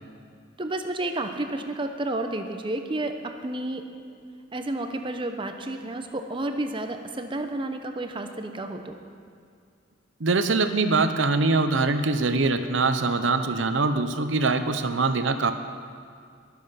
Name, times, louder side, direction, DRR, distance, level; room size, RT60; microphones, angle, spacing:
voice 1, 0.6-3.9 4.5-9.0, right 2 dB, 25° right, 6 dB, 0.8 m, -31 dB
voice 2, 10.2-15.5, right 3 dB, 80° right, 9 dB, 0.8 m, -23 dB
22.0 x 7.4 x 5.7 m, 2.3 s
head